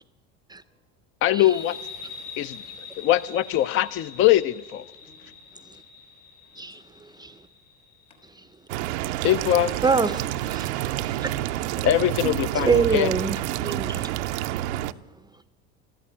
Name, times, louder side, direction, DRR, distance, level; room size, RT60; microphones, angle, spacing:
voice 1, 1.2-1.8 2.4-2.6 3.0-4.8 9.2-9.7 11.8-13.1, left 13 dB, 40° left, 0.4 m, -22 dB
sound 1, 1.4-8.6, left 5 dB, 65° left, 4.0 m, -44 dB
voice 2, 5.0-5.8 6.4-6.8 7.1-7.2 8.1-8.2 9.7-10.0 14.4-15.1, left 4 dB, 85° left, 5.7 m, -51 dB
voice 3, 6.6-7.4 9.8-10.1 10.5-11.3 12.5-14.1, right 4 dB, 10° right, 0.5 m, -26 dB
sound 2, 8.7-14.9, right 14 dB, 80° right, 0.6 m, -28 dB
13.0 x 12.5 x 8.7 m
hypercardioid pair, 85°, 34 cm